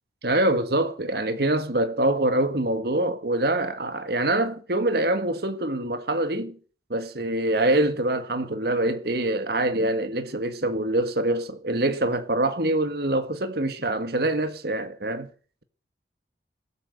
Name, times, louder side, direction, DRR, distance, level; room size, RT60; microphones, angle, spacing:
voice 1, 0.2-6.6 6.9-15.3, right 1 dB, 55° right, 1.8 m, -25 dB
19.5 x 8.9 x 7.9 m
head